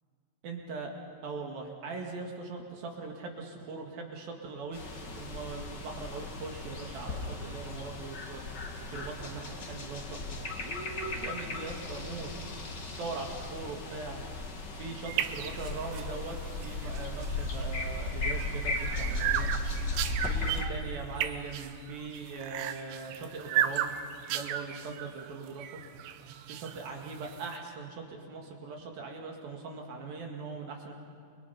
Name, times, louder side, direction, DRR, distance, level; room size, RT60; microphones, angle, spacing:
voice 1, 0.4-0.9 1.2-4.8 5.2-8.4 8.9-12.3 12.8-14.2 14.8-19.5 20.1-23.9 24.3-25.8 26.5-30.9, right 4 dB, 60° right, 1 dB, 3.5 m, -41 dB
sound 1, 4.7-20.7, left 2 dB, 65° left, 1.0 m, -36 dB
sound 2, 15.1-27.6, right 11 dB, 80° right, 3.0 m, -36 dB
30.0 x 22.0 x 5.8 m, 2.3 s
omnidirectional pair, 5.1 m